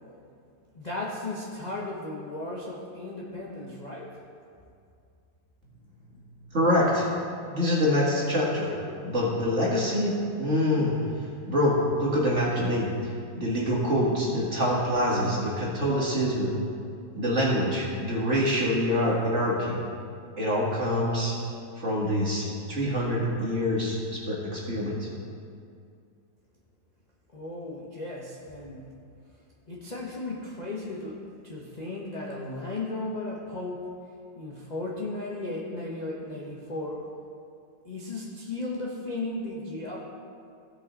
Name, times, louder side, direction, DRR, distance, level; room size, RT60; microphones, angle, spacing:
voice 1, 0.7-4.2 27.3-28.9 29.7-33.9 34.3-37.1 37.8-40.0, left 2 dB, 30° left, -4 dB, 0.8 m, -35 dB
voice 2, 6.5-7.1 7.5-8.7 9.0-10.9 11.5-12.9 13.3-16.5 17.1-19.8 20.4-21.3 21.8-24.9, equal, 40° right, -5 dB, 2.2 m, -25 dB
16.0 x 5.6 x 4.0 m, 2.4 s
omnidirectional pair, 2.0 m